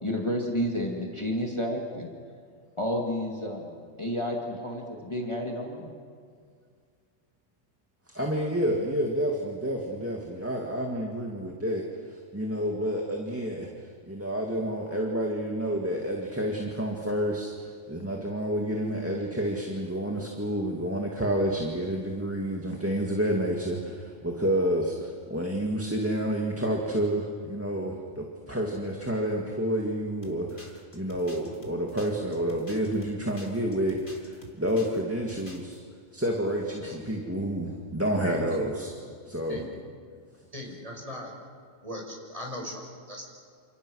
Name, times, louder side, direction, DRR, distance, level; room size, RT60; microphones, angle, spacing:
voice 1, 0.0-2.1 2.8-5.9, equal, 20° left, 0 dB, 2.3 m, -31 dB
voice 2, 8.1-13.7 14.1-35.8 36.1-38.9 39.3-39.6, equal, 10° right, -1 dB, 2.0 m, -29 dB
sound 1, 30.2-35.0 35.3-35.8, equal, 40° left, 3.0 m, -48 dB
voice 3, 38.2-38.8 39.5-39.7 40.5-41.3 41.8-43.3, left 1 dB, 30° right, 0 dB, 5.7 m, -39 dB
28.5 x 28.0 x 6.4 m, 2.1 s
omnidirectional pair, 1.3 m